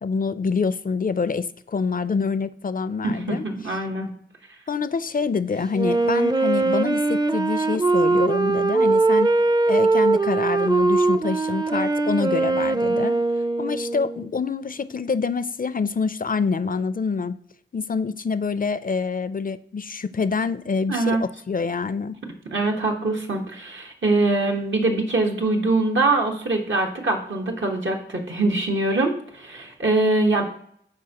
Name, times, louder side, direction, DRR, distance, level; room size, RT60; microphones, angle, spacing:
voice 1, 0.0-3.4 4.7-9.3 9.7-13.2 13.6-17.4 17.7-22.2, left 5 dB, 45° left, 14 dB, 0.4 m, -26 dB
voice 2, 3.0-4.2 20.9-21.2 22.5-30.5, right 2 dB, 80° right, 1 dB, 1.3 m, -23 dB
Wind instrument woodwind instrument, 5.7-14.3, right 3 dB, 20° right, 0.4 m, -21 dB
12.5 x 4.4 x 2.9 m, 0.67 s
wide cardioid pair, 45°, 19 cm